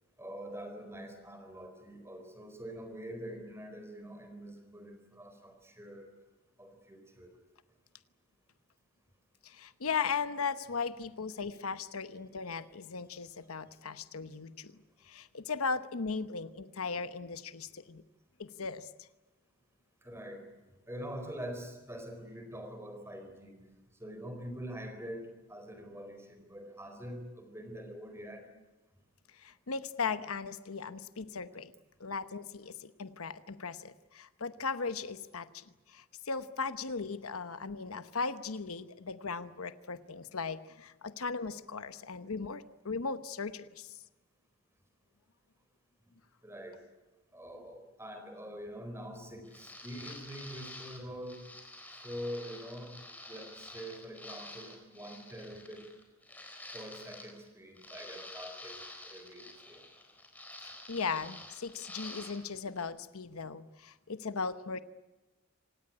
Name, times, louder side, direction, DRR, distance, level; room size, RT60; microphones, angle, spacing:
voice 1, 0.2-6.1 6.6-7.3 20.0-20.4 20.9-23.6 24.0-28.5 46.4-46.8 47.3-51.4 51.9-53.0 53.3-55.9 56.7-58.8 59.0-59.8, equal, 10° right, 7 dB, 4.2 m, -44 dB
voice 2, 9.4-14.7 15.0-18.0 18.4-18.9 29.4-31.7 32.0-44.0 60.6-64.8, left 5 dB, 85° left, 12 dB, 0.9 m, -37 dB
sound 1, 49.4-57.5 57.8-62.5 62.8-62.9, left 2 dB, 10° left, 4.1 m, -49 dB
26.0 x 18.5 x 9.7 m, 1.2 s
head